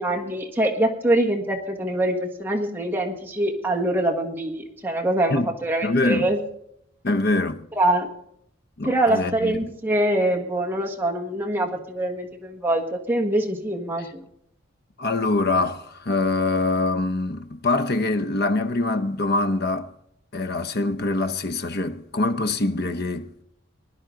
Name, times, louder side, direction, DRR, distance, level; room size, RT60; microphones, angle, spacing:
voice 1, 0.0-6.4 7.7-8.1 8.8-14.2, right 1 dB, 10° right, 1.6 m, -24 dB
voice 2, 5.8-6.3 7.0-7.7 8.8-9.5 15.0-19.9 20.3-23.4, left 2 dB, 50° left, 0.8 m, -24 dB
19.0 x 11.0 x 3.9 m
head